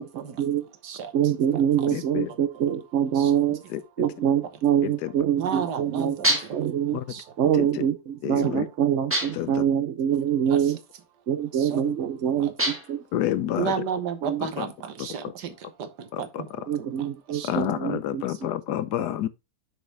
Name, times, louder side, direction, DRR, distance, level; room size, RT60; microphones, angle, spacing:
voice 1, 0.0-0.4 0.8-1.1 1.5-2.0 2.3-2.4 3.1-3.3 4.0-4.1 5.4-6.7 7.1-7.4 8.4-8.5 10.5-10.7 11.5-12.8 13.6-17.6 18.2-18.4, right 6 dB, 85° right, 1.6 m, -34 dB
voice 2, 1.1-3.6 4.0-6.2 6.5-7.0 7.4-10.8 11.3-13.0 14.2-14.4 16.7-18.5, right 9 dB, 60° right, 0.9 m, -25 dB
voice 3, 1.9-2.3 3.7-4.1 4.8-5.1 6.9-7.0 7.6-7.7 8.2-8.7 9.4-9.5 13.1-13.7 16.1-16.4 17.4-19.3, left 12 dB, 85° left, 1.3 m, -29 dB
sound 1, 6.2-6.7 9.1-9.6 12.6-13.0, right 1 dB, 10° right, 1.4 m, -26 dB
6.8 x 6.3 x 3.3 m
omnidirectional pair, 1.7 m